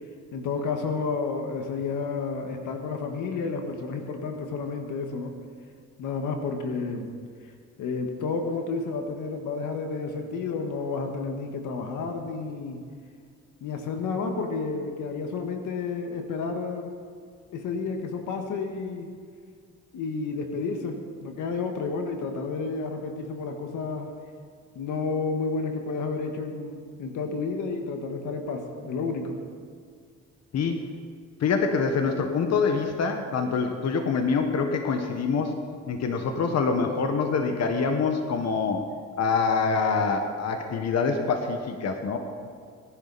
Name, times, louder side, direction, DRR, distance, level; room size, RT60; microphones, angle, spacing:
voice 1, 0.3-5.3 6.0-7.1 7.8-12.8 13.6-16.9 17.5-19.1 19.9-24.1 24.7-29.4, left 4 dB, 85° left, 4 dB, 1.6 m, -31 dB
voice 2, 31.4-35.5 35.9-38.8 39.2-42.2, left 5 dB, 60° left, 4 dB, 1.4 m, -25 dB
18.5 x 11.0 x 4.2 m, 2.1 s
cardioid pair, 90°, 30 cm